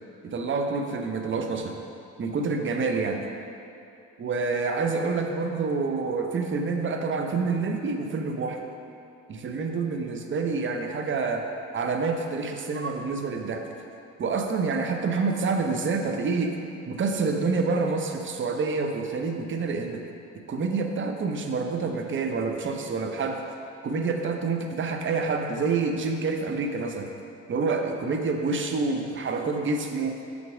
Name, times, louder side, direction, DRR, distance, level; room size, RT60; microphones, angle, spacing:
voice 1, 0.2-1.8 2.2-3.2 4.2-8.6 9.3-11.5 11.7-13.6 14.2-16.6 16.9-20.0 20.5-23.4 23.8-27.1 27.5-30.2, right 4 dB, 35° right, 4 dB, 0.7 m, -27 dB
5.9 x 4.0 x 4.8 m, 2.6 s
hypercardioid pair, 55°, 35 cm